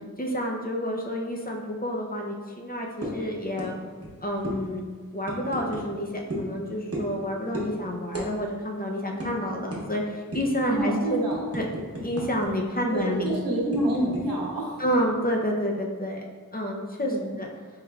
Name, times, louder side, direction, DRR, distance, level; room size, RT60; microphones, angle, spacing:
voice 1, 0.2-3.7 4.2-4.8 5.1-11.2 11.5-11.7 12.0-13.3 14.8-16.2 16.5-17.5, equal, 25° left, -1 dB, 0.5 m, -29 dB
sound 1, 3.0-3.2 3.6-3.7 4.0-4.1 4.4-4.6 5.2-5.8 6.3-6.5 6.9-7.2 7.5-7.7 8.1-8.3 8.6-8.7 9.2-9.3 9.7-9.8 10.3-10.6 11.0-12.5 12.7-12.8 13.3-14.2, right 1 dB, 45° right, 0.9 m, -33 dB
voice 2, 10.7-11.4 12.9-14.8 17.1-17.3, right 1 dB, 80° right, -4 dB, 0.9 m, -27 dB
4.7 x 3.2 x 2.3 m, 1.5 s
wide cardioid pair, 55°, 34 cm